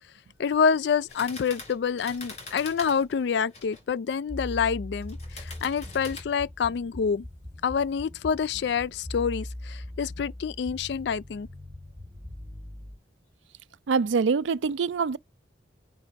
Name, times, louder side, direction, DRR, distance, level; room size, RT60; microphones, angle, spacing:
voice 1, 0.4-7.3 7.6-11.5, left 6 dB, 60° left, 0.3 m, -27 dB
sound 1, 1.1-3.8 5.0-6.2, left 3 dB, 35° left, 2.5 m, -43 dB
sound 2, 4.3-13.0, left 1 dB, 10° right, 1.9 m, -41 dB
voice 2, 13.9-15.2, right 5 dB, 75° right, 0.4 m, -24 dB
7.5 x 2.5 x 5.1 m
head